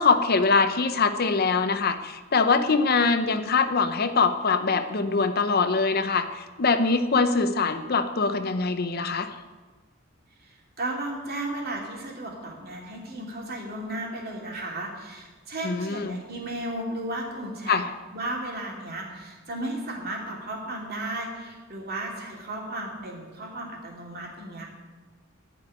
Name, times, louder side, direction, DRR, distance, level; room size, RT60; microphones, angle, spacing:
voice 1, 0.0-9.3 15.6-16.2 17.7-17.9, left 4 dB, 50° left, 9 dB, 0.7 m, -23 dB
voice 2, 10.4-17.8 18.1-24.7, right 1 dB, 50° right, -1 dB, 2.9 m, -34 dB
14.0 x 5.3 x 9.4 m, 1.3 s
head